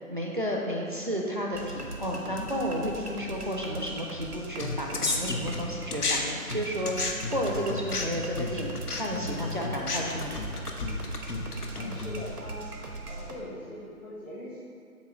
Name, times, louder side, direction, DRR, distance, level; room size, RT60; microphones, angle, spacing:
voice 1, 0.1-6.9 7.3-10.4, equal, 35° right, -2 dB, 0.5 m, -32 dB
sound 1, 1.5-13.4, right 2 dB, 80° right, 1.1 m, -40 dB
sound 2, 4.6-6.2 6.5-12.2, left 3 dB, 80° left, 0.9 m, -32 dB
voice 2, 11.7-12.7 13.1-14.6, equal, 60° left, -7 dB, 1.3 m, -41 dB
8.1 x 2.8 x 6.0 m, 2.3 s
figure-of-eight pair, 150°, 45 cm